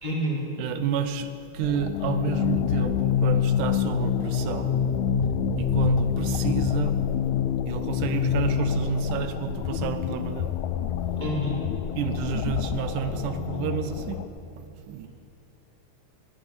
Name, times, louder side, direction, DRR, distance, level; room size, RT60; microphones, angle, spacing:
voice 1, 0.0-0.4 11.2-11.6, equal, 25° left, -3 dB, 1.0 m, -27 dB
voice 2, 0.6-4.8 5.6-7.1 7.7-10.5 12.0-14.2 14.6-15.1, right 8 dB, 85° right, 10 dB, 2.3 m, -30 dB
sound 1, 1.6-14.3, left 8 dB, 80° left, 1.9 m, -26 dB
10.5 x 9.8 x 9.7 m, 2.7 s
omnidirectional pair, 3.5 m